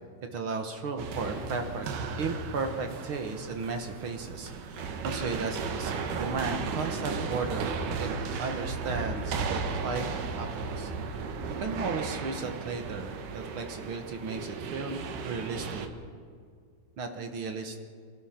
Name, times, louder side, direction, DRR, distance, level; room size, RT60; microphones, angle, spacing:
voice 1, 0.3-1.9 2.2-8.1 8.4-10.1 10.4-10.9 11.6-15.9 17.0-17.8, right 4 dB, 55° right, 5 dB, 1.7 m, -35 dB
sound 1, 1.0-15.9, right 4 dB, 80° right, 3.0 m, -35 dB
25.5 x 18.0 x 5.9 m, 2.2 s
omnidirectional pair, 3.7 m